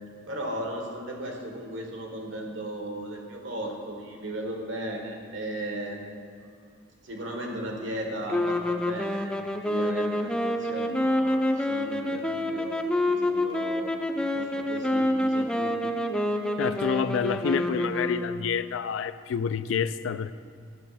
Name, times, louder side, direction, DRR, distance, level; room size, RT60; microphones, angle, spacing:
voice 1, 0.3-6.0 7.0-9.4 9.6-13.9 14.3-15.8, right 1 dB, 80° right, 1 dB, 1.5 m, -36 dB
sound 1, 8.3-18.7, left 1 dB, 5° left, 0.4 m, -27 dB
voice 2, 16.6-20.3, left 7 dB, 80° left, 14 dB, 0.3 m, -28 dB
11.0 x 7.6 x 4.1 m, 2.2 s
head